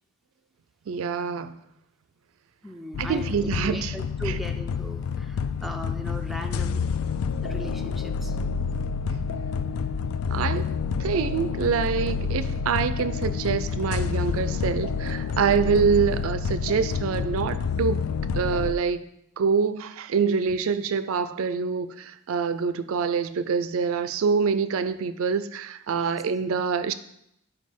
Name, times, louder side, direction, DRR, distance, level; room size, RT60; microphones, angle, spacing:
voice 1, 0.9-1.6 3.0-3.9 10.3-10.7 11.0-18.0 18.3-19.1 19.4-26.9, right 6 dB, 75° right, 12 dB, 0.4 m, -25 dB
voice 2, 2.6-6.9 7.4-8.4 15.5-15.8 20.4-20.6 25.9-26.2, right 1 dB, ahead, 4 dB, 0.4 m, -38 dB
sound 1, 2.9-18.7, left 5 dB, 75° left, 0.3 m, -28 dB
5.3 x 4.7 x 5.2 m, 0.76 s
head